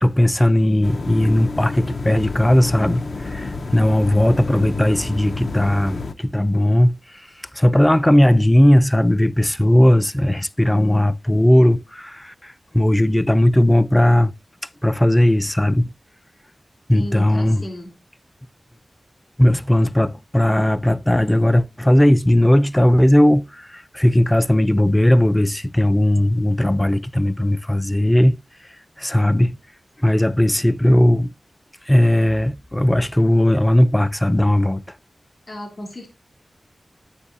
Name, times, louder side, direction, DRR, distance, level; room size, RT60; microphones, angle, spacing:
voice 1, 0.0-7.0 7.5-14.3 14.8-15.9 16.9-17.6 19.4-28.4 29.0-29.6 30.0-31.3 31.9-34.8, left 1 dB, 10° left, 0.4 m, -17 dB
sound 1, 0.8-6.1, left 3 dB, 70° left, 0.6 m, -29 dB
voice 2, 16.9-17.9 35.5-36.1, equal, 55° left, 3.1 m, -33 dB
9.8 x 9.3 x 2.6 m
wide cardioid pair, 70°, 0 cm